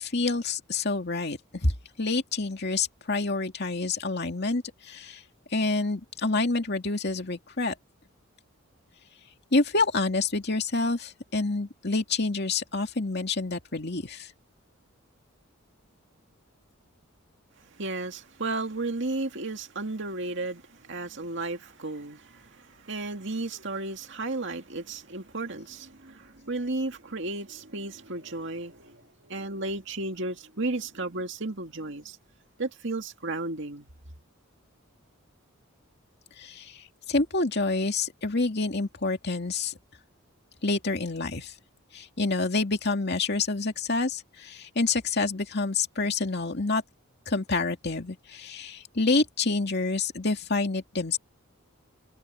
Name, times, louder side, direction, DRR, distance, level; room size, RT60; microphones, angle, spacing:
voice 1, 0.0-1.7 2.0-5.2 5.5-7.7 9.5-14.3 36.4-39.7 40.6-41.5 41.9-46.8 47.3-51.2, left 3 dB, 50° left, 2.4 m, -28 dB
voice 2, 17.8-32.2 32.6-33.9, right 2 dB, 60° right, 2.3 m, -34 dB
head